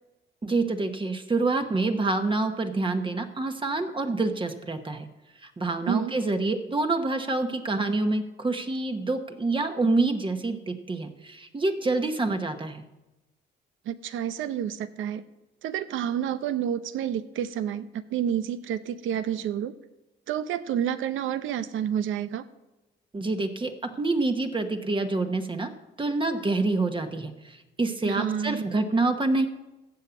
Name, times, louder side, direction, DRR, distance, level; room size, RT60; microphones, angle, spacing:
voice 1, 0.4-5.1 5.4-12.8 23.1-25.7 26.0-29.5, right 3 dB, 25° right, 6 dB, 1.3 m, -27 dB
voice 2, 13.9-15.2 15.6-19.7 20.3-22.4 28.0-28.7, right 9 dB, 80° right, 13 dB, 0.8 m, -29 dB
15.0 x 5.7 x 8.3 m, 1.0 s
cardioid pair, 90°, 20 cm